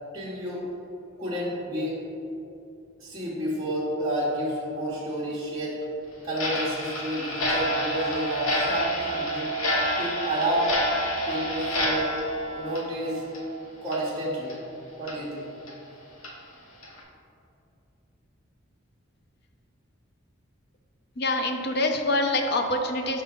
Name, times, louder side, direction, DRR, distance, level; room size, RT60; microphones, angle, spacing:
voice 1, 0.1-0.6 1.2-2.0 3.0-5.8 6.2-9.5 10.0-10.7 11.3-12.1 12.5-13.2 13.8-14.5 15.0-15.5, equal, 20° right, -8 dB, 1.1 m, -30 dB
Clock, 6.3-13.6 13.9-14.0 14.5-14.6 15.1-15.2 15.7-15.8 16.2-16.3 16.8-17.0, equal, 85° left, 1.1 m, -28 dB
voice 2, 21.2-23.2, left 2 dB, 50° left, 4 dB, 0.5 m, -25 dB
5.7 x 3.7 x 5.1 m, 2.7 s
head